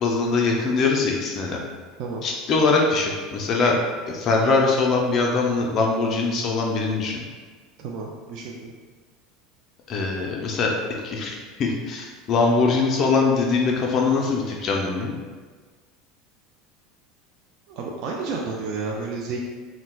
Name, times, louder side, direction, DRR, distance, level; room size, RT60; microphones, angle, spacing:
voice 1, 0.0-1.6 2.2-3.8 4.1-7.2 9.9-10.7 11.0-15.1, left 4 dB, 40° left, 0 dB, 0.4 m, -22 dB
voice 2, 7.8-8.7 17.7-19.4, right 4 dB, 55° right, -2 dB, 0.4 m, -31 dB
4.1 x 2.1 x 2.3 m, 1.4 s
supercardioid pair, 130°, 0 cm